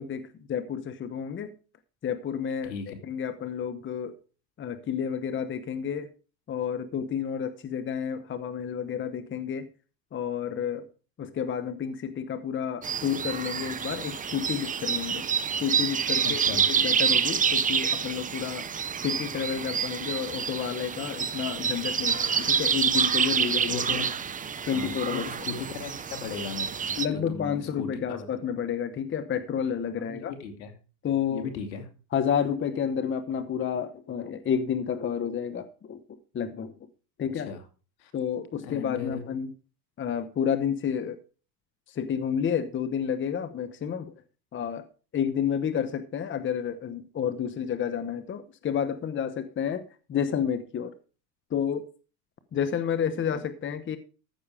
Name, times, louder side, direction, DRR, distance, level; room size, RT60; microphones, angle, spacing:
voice 1, 0.0-1.5 2.0-2.7 3.0-4.1 4.6-6.1 6.5-9.7 10.1-10.9 11.2-15.2 15.6-18.7 19.0-23.8 24.7-25.5 27.0-30.3 31.0-31.5 32.1-36.0 36.3-36.7 37.2-37.5 38.1-39.5 40.0-41.2 41.9-44.1 44.5-44.8 45.1-49.8 50.1-50.9 51.5-51.9 52.5-54.0, left 8 dB, 25° left, 12 dB, 1.0 m, -30 dB
voice 2, 2.6-3.0 16.2-16.7 23.7-24.1 24.7-28.3 30.0-30.7 31.3-31.9 37.3-37.6 38.0-38.1 38.6-39.2, left 6 dB, 85° left, 7 dB, 2.7 m, -37 dB
sound 1, 12.8-27.1, right 7 dB, 15° right, 0.7 m, -28 dB
14.5 x 7.0 x 4.9 m, 0.36 s
supercardioid pair, 105°, 50 cm